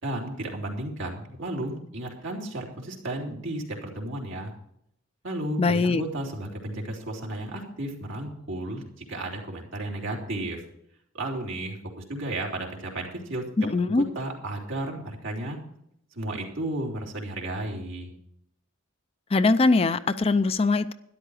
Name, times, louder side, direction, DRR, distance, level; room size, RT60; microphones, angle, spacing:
voice 1, 0.0-4.5 5.2-10.6 11.1-13.5 13.9-15.6 16.1-18.1, right 1 dB, 65° right, -1 dB, 3.4 m, -33 dB
voice 2, 5.6-6.0 13.6-14.1 19.3-20.9, left 3 dB, 30° left, 12 dB, 0.4 m, -22 dB
13.0 x 11.0 x 4.9 m, 0.74 s
head